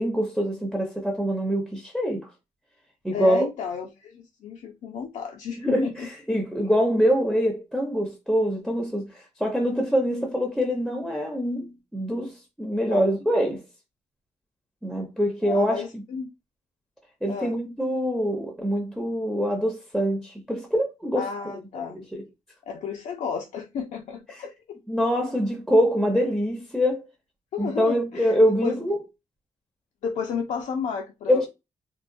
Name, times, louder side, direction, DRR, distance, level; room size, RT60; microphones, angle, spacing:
voice 1, 0.0-2.3 3.0-3.4 5.6-13.6 14.8-16.0 17.2-21.6 21.9-22.2 24.3-24.4 24.9-27.1 27.6-29.0 31.3-31.5, equal, ahead, 0.5 m, -24 dB
voice 2, 3.1-6.1 12.9-13.1 15.4-16.3 17.3-17.6 21.2-22.0 22.7-24.8 27.5-28.7 30.0-31.5, left 6 dB, 80° left, 0.5 m, -32 dB
3.7 x 2.1 x 2.5 m
wide cardioid pair, 160°, 12 cm